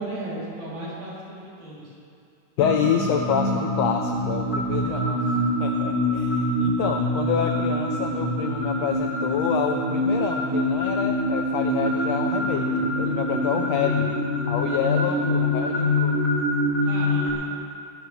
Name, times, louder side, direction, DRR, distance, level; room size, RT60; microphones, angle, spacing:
voice 1, 0.0-1.9 4.8-5.1 16.8-17.5, right 1 dB, 65° right, -7 dB, 4.4 m, -35 dB
voice 2, 2.6-5.2 5.6-14.1 14.5-16.2, left 8 dB, 85° left, 5 dB, 1.5 m, -28 dB
sound 1, 2.6-17.3, left 1 dB, 30° left, 2.5 m, -25 dB
20.0 x 12.5 x 3.2 m, 2.4 s
omnidirectional pair, 3.6 m